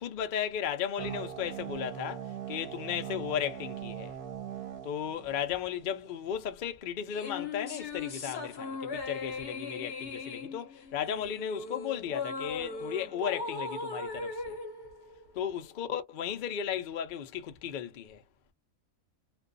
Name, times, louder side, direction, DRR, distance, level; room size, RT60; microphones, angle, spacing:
voice 1, 0.0-4.1 4.8-14.6 15.3-18.2, left 9 dB, 75° left, 0.4 m, -35 dB
sound 1, 1.0-6.0, right 10 dB, 90° right, 1.2 m, -41 dB
sound 2, 7.1-15.7, left 3 dB, 50° left, 0.9 m, -39 dB
2.5 x 2.2 x 2.4 m
omnidirectional pair, 1.6 m